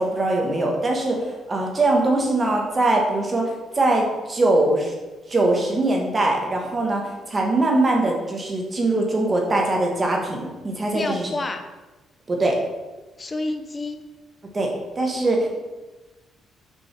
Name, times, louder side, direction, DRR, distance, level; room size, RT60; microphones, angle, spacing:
voice 1, 0.0-4.9 5.3-7.0 7.3-11.3 12.3-12.6 14.5-14.7 15.0-15.5, right 2 dB, 20° right, 0 dB, 1.5 m, -22 dB
voice 2, 10.9-11.7 13.2-14.0, left 2 dB, 20° left, 7 dB, 0.7 m, -29 dB
6.2 x 5.4 x 6.0 m, 1.2 s
cardioid pair, 165°, 0 cm